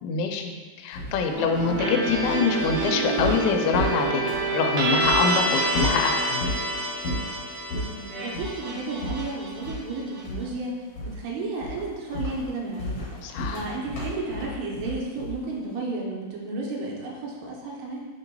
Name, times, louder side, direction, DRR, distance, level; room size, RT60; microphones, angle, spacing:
voice 1, 0.0-6.4 13.2-13.6, left 5 dB, 85° left, 4 dB, 2.8 m, -25 dB
sound 1, 0.9-4.6 5.0-5.2 5.7-6.6 7.0-7.3 7.7-7.9 8.3-8.6 9.0-10.0 10.2-10.6 10.9-11.3 11.6-15.5, left 1 dB, 65° left, 1.8 m, -32 dB
sound 2, 1.3-10.2, right 2 dB, 60° right, 1.8 m, -27 dB
voice 2, 8.2-10.8 11.0-13.1 13.5-18.1, right 3 dB, 80° right, -2 dB, 2.9 m, -32 dB
8.4 x 3.0 x 3.8 m, 1.4 s
omnidirectional pair, 5.0 m